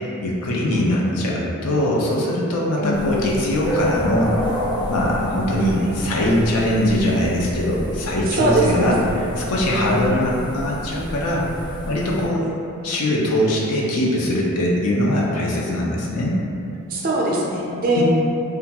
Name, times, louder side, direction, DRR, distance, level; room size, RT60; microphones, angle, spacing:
voice 1, 0.0-4.3 4.9-9.0 9.4-11.5 11.9-12.5 12.8-16.4 18.0-18.1, left 1 dB, 85° left, -3 dB, 0.5 m, -21 dB
sound 1, 2.9-12.3, equal, 20° left, 0.4 m, -30 dB
voice 2, 8.3-8.9 9.7-10.0 16.9-18.0, right 2 dB, 40° right, -3 dB, 0.4 m, -22 dB
2.4 x 2.2 x 2.8 m, 2.7 s
head